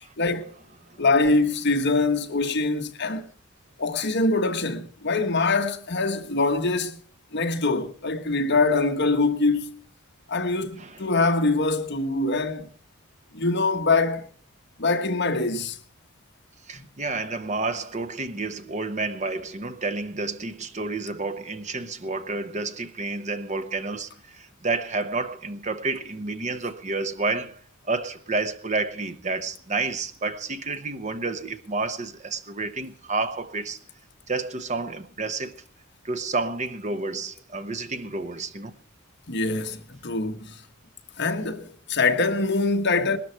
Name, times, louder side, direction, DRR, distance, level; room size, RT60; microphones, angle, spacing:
voice 1, 0.2-0.5 1.0-3.3 3.8-7.0 7.3-9.8 10.3-12.7 13.3-14.2 14.8-15.8 39.3-40.6 41.2-43.2, left 3 dB, 50° left, 1.5 m, -24 dB
voice 2, 16.7-33.8 34.3-35.6 36.0-38.7, right 3 dB, 30° right, 0.9 m, -30 dB
20.0 x 13.0 x 4.5 m
head